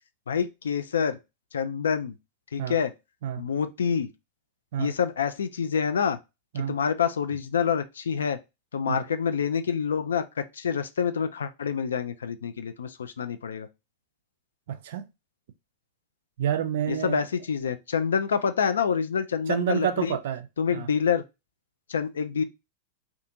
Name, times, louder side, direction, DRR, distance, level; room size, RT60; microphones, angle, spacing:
voice 1, 0.3-1.2 1.5-2.1 2.5-2.9 3.4-4.1 4.8-6.2 6.7-8.4 8.7-13.7 16.9-20.2 20.6-21.2 21.9-22.4, left 7 dB, 65° left, 0.3 m, -27 dB
voice 2, 14.7-15.1 16.4-17.3 19.5-20.5 20.7-20.9, right 10 dB, 55° right, 0.4 m, -29 dB
2.5 x 2.4 x 2.7 m
figure-of-eight pair, 90°, 0 cm